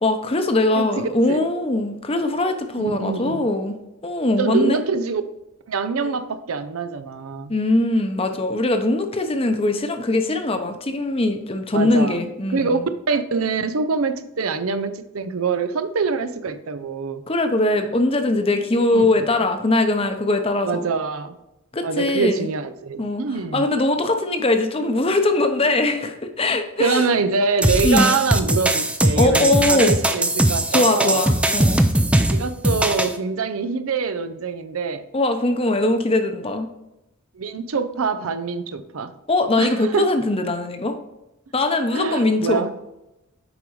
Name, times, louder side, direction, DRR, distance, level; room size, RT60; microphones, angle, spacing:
voice 1, 0.0-3.7 4.0-4.8 6.1-6.2 7.5-12.7 17.3-20.9 21.7-22.5 23.0-23.2 23.5-27.1 27.8-28.1 29.2-29.9 30.7-31.8 35.1-36.7 39.3-41.0 41.5-42.6, left 2 dB, 25° left, 0.7 m, -21 dB
voice 2, 0.8-1.4 2.7-3.5 4.4-5.2 5.7-7.5 11.7-12.2 12.5-12.8 13.1-17.2 18.9-19.1 20.6-21.4 21.8-23.7 26.8-31.2 32.3-35.0 37.3-39.1 39.6-40.1 41.9-42.7, right 4 dB, 85° right, 0.6 m, -24 dB
sound 1, 27.6-33.2, right 1 dB, 5° right, 0.4 m, -19 dB
8.0 x 5.3 x 3.2 m
head